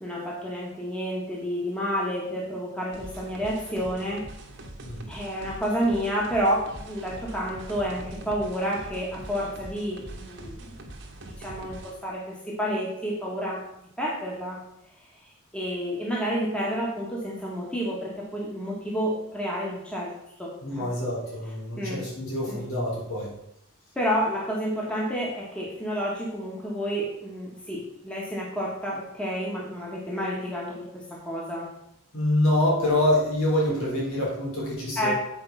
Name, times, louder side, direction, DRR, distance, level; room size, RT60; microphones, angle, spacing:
voice 1, 0.0-4.2 5.1-10.0 10.3-10.7 11.4-13.6 14.0-14.6 15.5-20.1 20.4-21.0 21.7-22.0 22.5-22.6 23.9-31.7 35.0-35.1, equal, 5° left, -4 dB, 1.6 m, -30 dB
sound 1, 2.9-11.9, right 1 dB, 55° right, 1.3 m, -42 dB
voice 2, 20.6-23.3 32.1-35.1, left 1 dB, 70° left, -4 dB, 3.6 m, -26 dB
7.9 x 4.8 x 5.7 m, 0.79 s
head